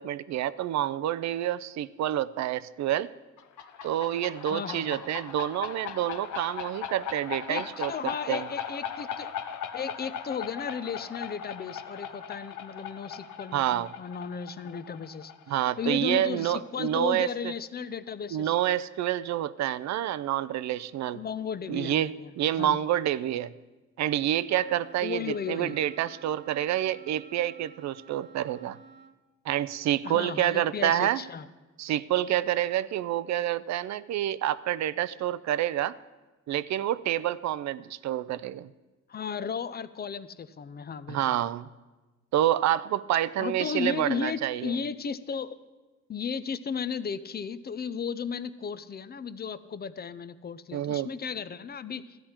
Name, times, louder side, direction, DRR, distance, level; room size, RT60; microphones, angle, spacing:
voice 1, 0.0-3.1 3.8-8.5 13.5-13.9 15.5-17.5 18.3-21.2 21.7-23.5 24.0-28.8 29.5-31.2 31.8-36.0 36.5-38.7 41.1-41.7 42.3-44.7 50.7-51.1, right 12 dB, 65° right, 17 dB, 0.5 m, -28 dB
sound 1, 3.4-16.8, left 8 dB, 75° left, 0.8 m, -39 dB
voice 2, 4.5-5.0 7.5-9.3 9.7-15.3 15.8-18.5 21.1-22.3 22.6-22.8 25.0-25.8 30.0-31.5 39.1-41.4 43.4-45.6 46.1-52.2, left 6 dB, 35° left, 14 dB, 0.5 m, -35 dB
Wind instrument woodwind instrument, 24.6-29.2, right 5 dB, 35° right, 0.9 m, -52 dB
13.5 x 10.5 x 4.4 m, 1.2 s
cardioid pair, 90°, 30 cm